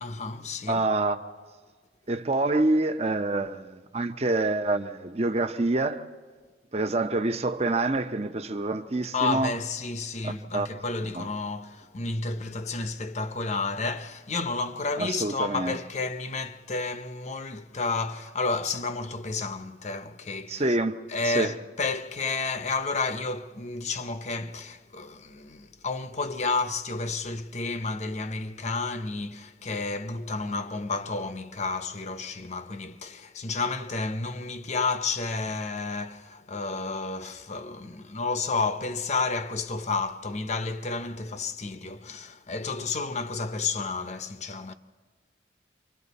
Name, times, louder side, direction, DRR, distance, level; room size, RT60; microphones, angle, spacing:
voice 1, 0.0-0.8 9.1-20.8 21.1-44.7, left 3 dB, 35° left, 0.7 m, -31 dB
voice 2, 0.7-1.2 2.1-6.0 6.7-9.5 10.2-10.7 11.1-11.2 15.0-15.8 20.5-21.0 21.2-21.5, right 2 dB, 30° right, 0.7 m, -26 dB
29.5 x 25.0 x 4.1 m
head